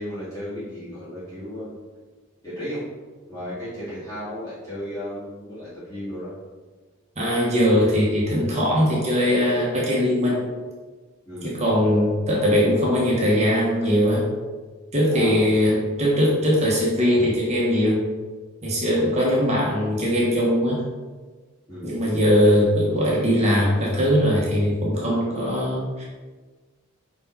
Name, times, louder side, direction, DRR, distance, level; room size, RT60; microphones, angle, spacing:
voice 1, 0.0-1.7 2.4-2.8 3.3-6.3 11.3-11.7 15.1-15.7 21.7-21.9, equal, 15° left, -12 dB, 2.1 m, -34 dB
voice 2, 7.2-10.4 11.4-14.2 14.9-18.0 18.6-20.8 21.8-26.0, equal, 30° right, -4 dB, 1.5 m, -20 dB
5.3 x 5.3 x 4.2 m, 1.3 s
head